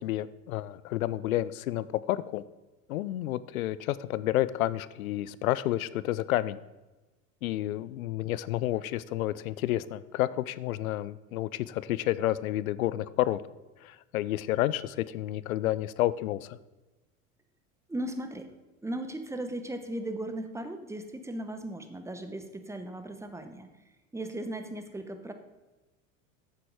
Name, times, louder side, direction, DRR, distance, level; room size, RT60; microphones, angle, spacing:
voice 1, 0.0-2.4 2.9-6.6 7.4-13.4 13.8-16.6, left 14 dB, 90° left, 18 dB, 0.5 m, -30 dB
voice 2, 17.9-18.5 18.8-23.7 24.1-25.3, right 1 dB, 5° right, 7 dB, 1.0 m, -37 dB
9.0 x 6.9 x 4.7 m, 1.1 s
hypercardioid pair, 90°, 41 cm